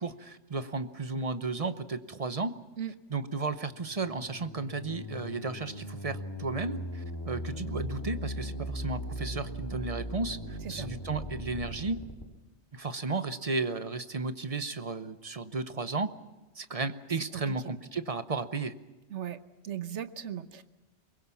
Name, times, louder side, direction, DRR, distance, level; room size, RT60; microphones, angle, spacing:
voice 1, 0.0-2.6 3.1-12.0 12.7-16.1 16.6-18.7, right 3 dB, 35° right, 11 dB, 0.9 m, -34 dB
sound 1, 3.5-12.2, equal, 20° left, 2.8 m, -39 dB
voice 2, 19.1-20.6, right 10 dB, 90° right, 12 dB, 1.3 m, -37 dB
23.5 x 21.0 x 7.1 m, 1.1 s
omnidirectional pair, 1.2 m